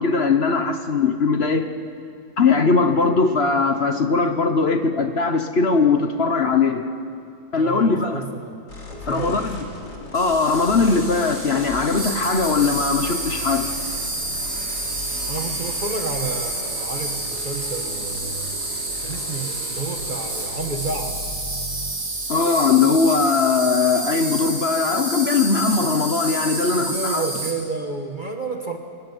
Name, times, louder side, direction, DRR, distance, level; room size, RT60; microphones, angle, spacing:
voice 1, 0.0-1.6 2.4-6.9 7.5-8.2 9.1-9.6 10.1-13.7 22.3-27.2, left 4 dB, 45° left, 7 dB, 1.2 m, -20 dB
voice 2, 7.5-8.6 8.9-9.8 15.3-18.6 19.0-21.2 26.7-28.8, right 3 dB, 30° right, 4 dB, 1.3 m, -31 dB
sound 1, 8.7-21.9, left 2 dB, 85° left, 3.7 m, -37 dB
Insect, 10.1-27.5, right 2 dB, 65° right, 4.0 m, -29 dB
24.0 x 14.5 x 9.8 m, 2.4 s
omnidirectional pair, 1.7 m